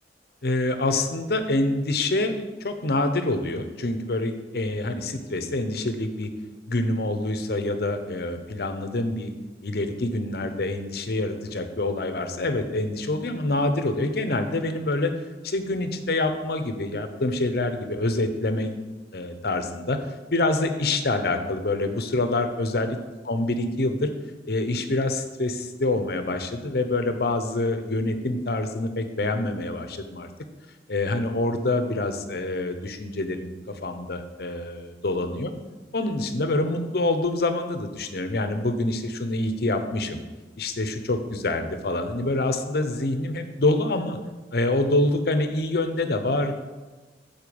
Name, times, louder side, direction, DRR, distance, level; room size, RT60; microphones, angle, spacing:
voice 1, 0.4-6.3 6.7-9.3 9.6-15.1 15.4-18.7 19.1-20.0 20.3-22.9 23.3-24.1 24.5-30.3 30.9-35.5 35.9-40.2 40.6-44.2 44.5-46.6, left 2 dB, 60° left, 8 dB, 0.8 m, -26 dB
7.9 x 4.5 x 7.0 m, 1.3 s
head